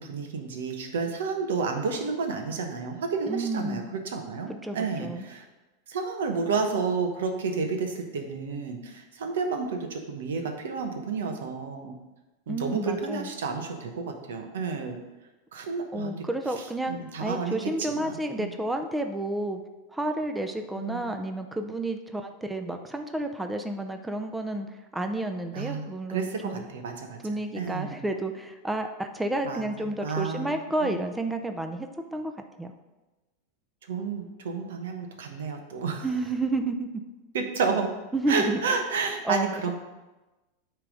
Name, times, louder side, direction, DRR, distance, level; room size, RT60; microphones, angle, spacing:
voice 1, 0.0-5.4 5.9-11.9 12.5-15.0 15.5-16.2 16.9-18.5 20.8-21.0 25.5-27.2 27.5-28.0 29.4-30.5 30.8-31.0 33.9-36.1 37.3-37.9 38.3-39.7, right 4 dB, 85° right, 4 dB, 1.1 m, -31 dB
voice 2, 3.3-3.9 4.6-5.3 12.5-13.3 15.9-19.6 19.9-24.7 24.9-26.6 27.2-32.3 32.6-32.7 36.0-36.9 38.1-38.6 39.0-39.7, right 2 dB, 10° right, 6 dB, 0.5 m, -31 dB
9.0 x 3.5 x 5.2 m, 1.1 s
supercardioid pair, 125°, 0 cm